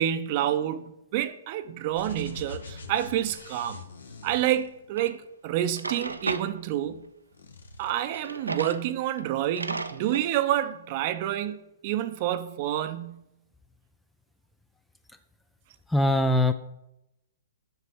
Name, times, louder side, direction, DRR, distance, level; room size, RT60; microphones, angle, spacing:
voice 1, 0.0-3.8 4.2-7.1 7.8-13.2, right 12 dB, 40° right, 0.7 m, -28 dB
sound 1, 1.9-5.3 6.0-7.1 7.3-7.9, left 3 dB, 65° left, 1.3 m, -44 dB
Drawer open or close, 5.0-5.1 5.6-6.5 8.0-8.8 9.2-9.3 9.5-10.3, right 3 dB, 80° right, 0.7 m, -34 dB
voice 2, 15.9-16.5, left 1 dB, 5° left, 0.4 m, -21 dB
8.0 x 6.7 x 6.3 m
figure-of-eight pair, 120°, 0 cm